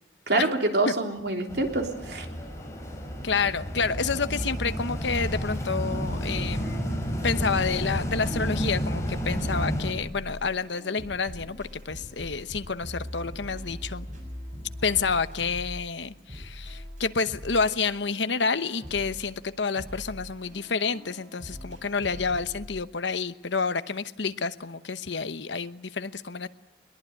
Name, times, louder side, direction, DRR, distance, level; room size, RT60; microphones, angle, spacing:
voice 1, 0.3-2.3, right 2 dB, 60° right, 3 dB, 3.4 m, -26 dB
sound 1, 1.5-9.9, equal, 15° left, 5.1 m, -31 dB
voice 2, 3.2-14.1 14.8-26.5, left 5 dB, 75° left, 12 dB, 1.0 m, -29 dB
sound 2, 3.9-5.6 5.9-22.6, equal, 40° right, 7.3 m, -42 dB
22.0 x 21.5 x 9.3 m, 0.92 s
head